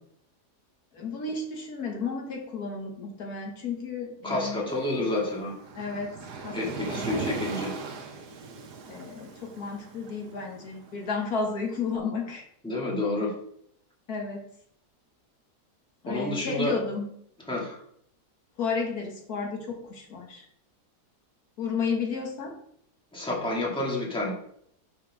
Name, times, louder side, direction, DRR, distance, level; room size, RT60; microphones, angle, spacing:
voice 1, 0.9-4.7 5.7-6.2 6.4-7.3 8.9-12.4 14.1-14.4 16.0-17.1 18.6-20.5 21.6-22.5, left 5 dB, 75° left, 0 dB, 1.8 m, -32 dB
voice 2, 4.2-5.5 6.5-7.7 12.6-13.3 16.1-16.8 17.5-17.8 23.1-24.3, left 2 dB, 5° left, -3 dB, 1.9 m, -29 dB
Waves surf, 4.7-11.8, right 4 dB, 90° right, 1.6 m, -38 dB
6.1 x 4.7 x 6.0 m, 0.68 s
omnidirectional pair, 1.7 m